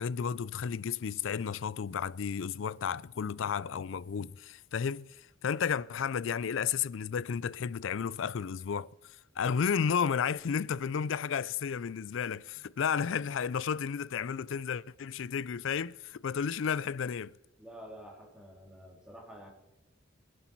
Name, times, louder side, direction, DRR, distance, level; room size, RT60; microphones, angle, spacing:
voice 1, 0.0-17.3, left 7 dB, 60° left, 0.4 m, -32 dB
voice 2, 17.6-19.5, equal, 5° right, 2.8 m, -49 dB
21.5 x 11.0 x 4.6 m
head